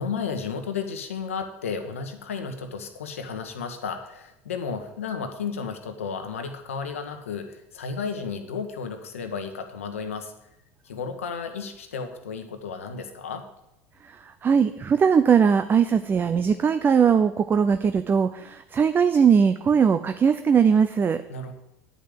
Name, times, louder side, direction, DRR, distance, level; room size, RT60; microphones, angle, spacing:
voice 1, 0.0-10.3 10.8-13.5 21.3-21.5, left 5 dB, 85° left, 6 dB, 1.3 m, -33 dB
voice 2, 14.4-21.2, right 6 dB, 30° right, 10 dB, 0.6 m, -20 dB
10.0 x 5.3 x 7.8 m, 0.85 s
hypercardioid pair, 80°, 7 cm